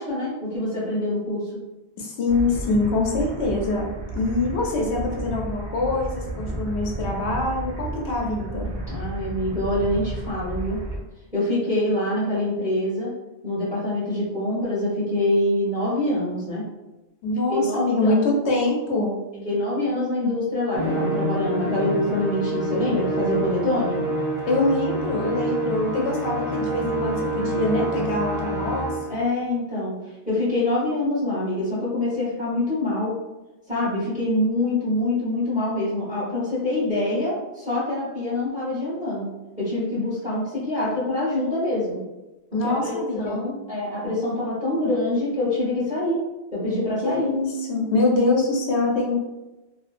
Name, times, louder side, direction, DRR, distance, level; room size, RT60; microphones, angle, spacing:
voice 1, 0.0-1.6 8.9-10.8 11.3-13.1 13.4-16.6 17.5-18.2 19.4-24.0 25.8-26.0 29.1-33.2 33.7-39.3 39.6-42.0 42.6-46.2 46.5-47.3, left 1 dB, 5° right, -9 dB, 1.1 m, -25 dB
voice 2, 2.0-3.9 4.1-8.7 17.2-19.2 24.5-29.0 42.5-43.4 47.0-49.1, left 2 dB, 75° left, -1 dB, 1.0 m, -24 dB
sound 1, 2.3-11.0, right 1 dB, 85° right, 1.1 m, -32 dB
Musical instrument, 20.7-29.2, right 1 dB, 35° left, 0.8 m, -27 dB
2.8 x 2.4 x 2.5 m, 1.0 s
omnidirectional pair, 1.1 m